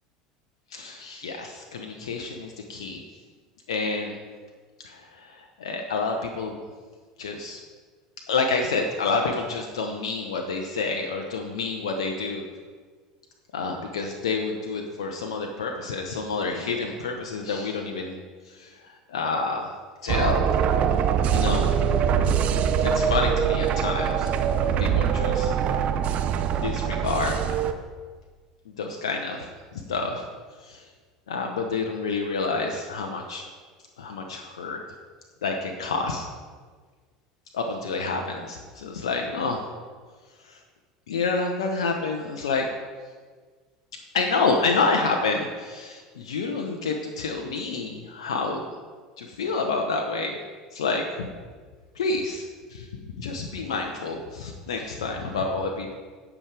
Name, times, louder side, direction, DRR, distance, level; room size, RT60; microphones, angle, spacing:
voice 1, 0.7-3.0 3.7-4.2 4.8-6.6 7.2-7.6 8.3-12.4 13.5-18.2 18.4-19.7 20.0-20.5 21.3-21.7 22.8-24.3 24.6-25.5 26.6-27.4 28.8-30.3 30.6-30.8 31.3-33.5 34.0-34.8 35.4-36.3 37.5-39.7 40.4-40.6 41.1-42.7 44.1-48.7 49.2-50.4 50.7-51.3 51.9-52.9 53.2-55.9, left 4 dB, 85° left, 2 dB, 0.9 m, -28 dB
sound 1, 20.1-27.7, right 8 dB, 50° right, 0.8 m, -23 dB
17.0 x 6.1 x 3.4 m, 1.5 s
hypercardioid pair, 80°, 3 cm